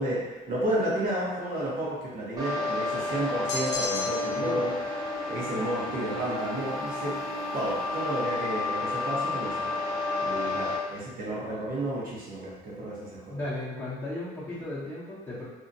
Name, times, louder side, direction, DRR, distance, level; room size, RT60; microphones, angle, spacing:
voice 1, 0.0-4.8 5.3-7.2 7.5-13.4, right 1 dB, 55° right, -6 dB, 1.0 m, -32 dB
sound 1, 2.4-10.8, left 3 dB, 20° right, 0.8 m, -31 dB
sound 2, 3.5-4.5, left 5 dB, 90° left, 0.4 m, -33 dB
voice 2, 4.3-4.7 13.3-15.5, left 1 dB, 15° left, -12 dB, 0.8 m, -35 dB
2.7 x 2.4 x 2.6 m, 1.1 s
cardioid pair, 110°, 17 cm